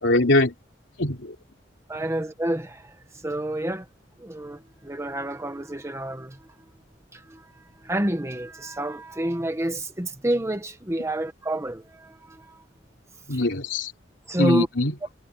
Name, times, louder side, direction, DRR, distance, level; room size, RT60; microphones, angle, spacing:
voice 1, 0.0-0.5 1.0-1.3 13.3-13.9 14.4-14.9, left 2 dB, 80° left, 3.1 m, -22 dB
voice 2, 1.9-3.0 3.2-3.9 4.2-6.4 7.1-7.4 7.8-12.6 13.3-13.4 14.3-14.7, right 1 dB, 15° right, 1.2 m, -28 dB
head